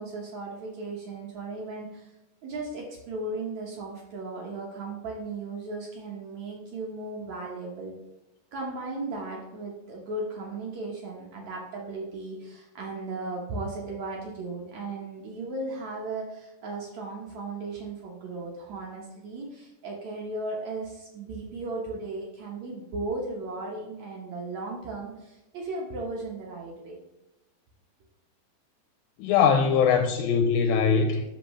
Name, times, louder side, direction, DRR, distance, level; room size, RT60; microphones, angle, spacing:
voice 1, 0.0-2.1 2.4-7.9 8.5-27.0, right 2 dB, 65° right, 2.0 m, -36 dB
voice 2, 29.2-31.2, left 6 dB, 85° left, 2.3 m, -21 dB
12.5 x 4.5 x 3.1 m
omnidirectional pair, 4.3 m